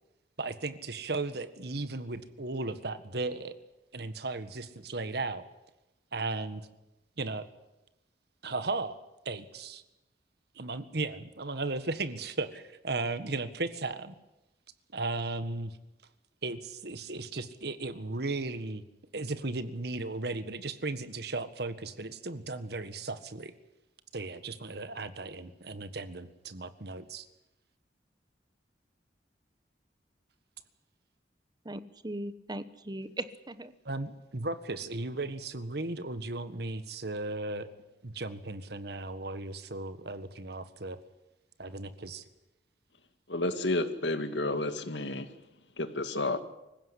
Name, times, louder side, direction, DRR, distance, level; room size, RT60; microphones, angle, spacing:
voice 1, 0.4-3.6 3.9-5.4 6.1-6.7 7.2-7.4 8.4-9.0 9.2-9.8 10.5-14.1 14.9-15.8 16.4-18.8 19.1-23.5 24.1-27.3 33.8-37.7 38.0-41.0 41.6-42.2, right 3 dB, 65° right, 12 dB, 1.6 m, -36 dB
voice 2, 31.6-33.7, right 1 dB, 25° right, 12 dB, 1.1 m, -39 dB
voice 3, 43.3-45.3 45.8-46.4, left 2 dB, 85° left, 9 dB, 2.1 m, -31 dB
25.0 x 16.0 x 10.0 m, 0.97 s
head